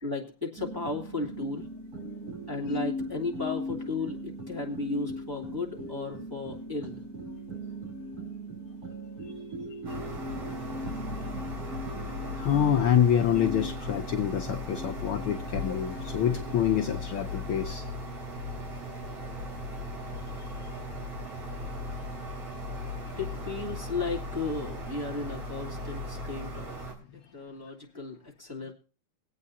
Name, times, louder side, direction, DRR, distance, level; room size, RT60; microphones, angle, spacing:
voice 1, 0.0-1.7 2.5-7.0 23.2-26.8 27.3-28.7, left 3 dB, 10° right, 2.2 m, -34 dB
sound 1, 0.6-17.0, equal, 30° right, 3.7 m, -39 dB
sound 2, 9.9-26.9, left 1 dB, 55° right, 4.2 m, -37 dB
voice 2, 11.9-17.8 20.2-20.7 22.0-22.3 23.0-23.2, left 9 dB, 80° left, 1.2 m, -27 dB
23.0 x 8.5 x 2.7 m
omnidirectional pair, 3.5 m